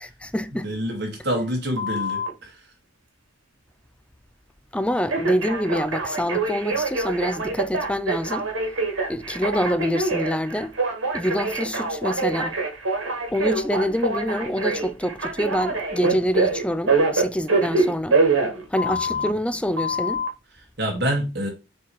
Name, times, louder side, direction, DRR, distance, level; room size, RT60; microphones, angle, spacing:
voice 1, 0.0-0.7 4.7-8.5 9.1-10.7 11.1-12.6 13.3-18.2 18.7-20.2, equal, 5° left, 0.4 m, -26 dB
voice 2, 0.6-2.5 18.9-19.0 19.3-19.4 20.8-21.5, equal, 60° right, 2.3 m, -26 dB
Telephone, 1.8-2.3 5.1-19.3 19.8-20.3, right 3 dB, 85° right, 2.0 m, -25 dB
6.7 x 3.3 x 5.6 m
head